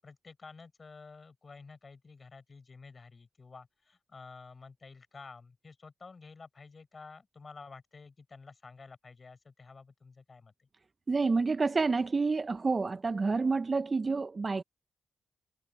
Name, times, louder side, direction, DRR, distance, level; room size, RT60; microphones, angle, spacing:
voice 1, 0.0-10.7, left 4 dB, 45° left, 8.0 m, -51 dB
voice 2, 11.1-14.6, right 4 dB, 40° right, 1.1 m, -28 dB
hypercardioid pair, 40°, 0 cm